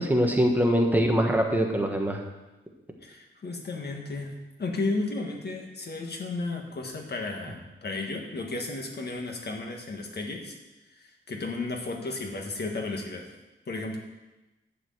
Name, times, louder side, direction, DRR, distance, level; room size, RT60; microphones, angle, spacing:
voice 1, 0.0-2.2, equal, 10° right, 1 dB, 1.2 m, -23 dB
voice 2, 3.0-4.3 4.6-10.5 11.3-13.3 13.7-14.0, left 3 dB, 55° left, 2 dB, 1.6 m, -33 dB
11.5 x 4.9 x 7.8 m, 1.0 s
wide cardioid pair, 175°, 20 cm